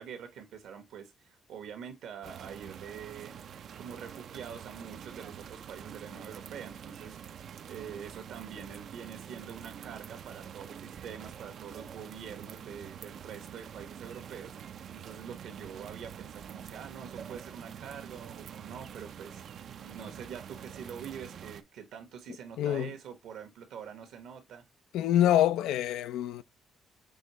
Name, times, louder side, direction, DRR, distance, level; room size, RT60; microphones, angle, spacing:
voice 1, 0.0-3.3 3.7-7.2 7.7-24.6, right 7 dB, 85° right, 1.2 m, -45 dB
sound 1, 2.2-21.6, right 8 dB, 65° right, 0.4 m, -46 dB
voice 2, 22.6-22.9 24.9-26.4, left 12 dB, 90° left, 0.4 m, -26 dB
6.2 x 2.7 x 3.0 m
cardioid pair, 90°, 0 cm